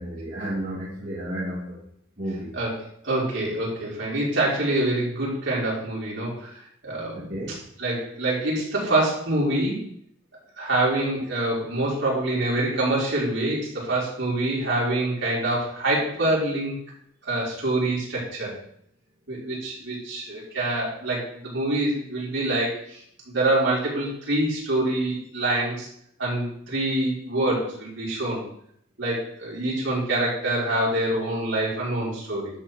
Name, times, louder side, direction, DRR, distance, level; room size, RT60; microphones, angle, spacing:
voice 1, 0.0-1.8 2.2-2.5 7.1-7.6, right 1 dB, 45° right, -6 dB, 2.3 m, -32 dB
voice 2, 3.0-7.3 7.8-9.8 10.6-16.8 17.2-18.5 19.3-23.0 23.3-25.9 26.2-28.4 29.0-32.5, right 1 dB, 65° right, -5 dB, 5.3 m, -25 dB
11.5 x 6.1 x 6.3 m, 0.68 s
head